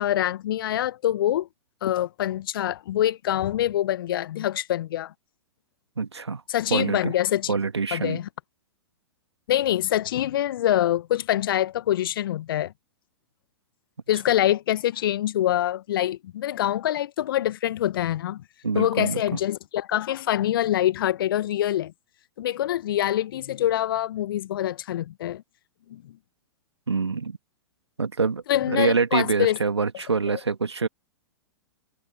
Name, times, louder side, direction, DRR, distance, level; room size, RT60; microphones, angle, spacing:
voice 1, 0.0-1.5 1.8-5.1 6.5-7.5 7.9-8.3 9.5-12.7 14.1-18.4 18.7-21.9 22.4-25.4 25.9-26.2 28.5-29.6 30.3-30.4, left 12 dB, 55° left, 1.2 m, -25 dB
voice 2, 6.0-6.4 6.7-7.1 7.5-8.2 18.6-19.2 26.9-27.4 28.0-30.9, right 4 dB, 80° right, 1.7 m, -25 dB
figure-of-eight pair, 105°, 14 cm